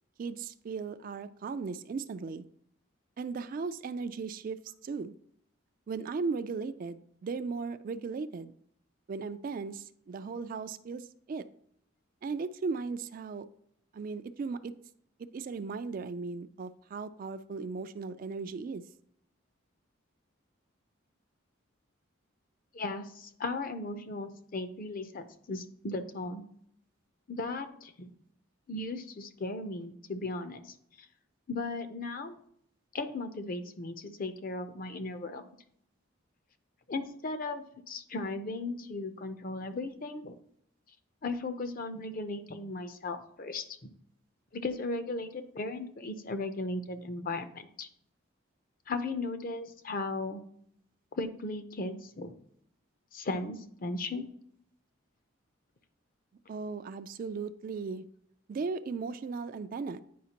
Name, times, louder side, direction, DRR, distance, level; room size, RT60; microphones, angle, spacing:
voice 1, 0.2-2.4 3.2-4.6 4.8-5.1 5.9-8.5 9.1-11.5 12.2-13.5 13.9-14.7 15.2-18.8 56.5-58.0 58.5-60.0, right 4 dB, 45° right, 12 dB, 0.3 m, -37 dB
voice 2, 22.7-26.4 27.3-28.1 28.7-30.6 31.5-32.4 32.9-35.4 36.9-40.3 41.2-43.9 44.5-47.9 48.9-50.4 51.1-52.3 53.1-54.3, left 2 dB, 45° left, 9 dB, 0.6 m, -36 dB
9.3 x 5.0 x 2.9 m, 0.68 s
head